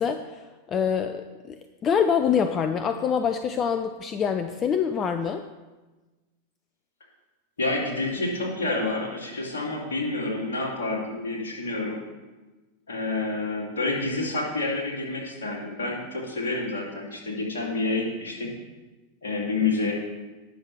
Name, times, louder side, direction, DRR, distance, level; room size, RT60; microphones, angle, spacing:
voice 1, 0.0-5.5, left 7 dB, 25° left, 8 dB, 0.5 m, -25 dB
voice 2, 7.6-12.0 12.9-18.5 19.2-19.9, left 3 dB, 65° left, -2 dB, 2.9 m, -28 dB
19.0 x 6.6 x 3.4 m, 1.2 s
figure-of-eight pair, 90°, 0 cm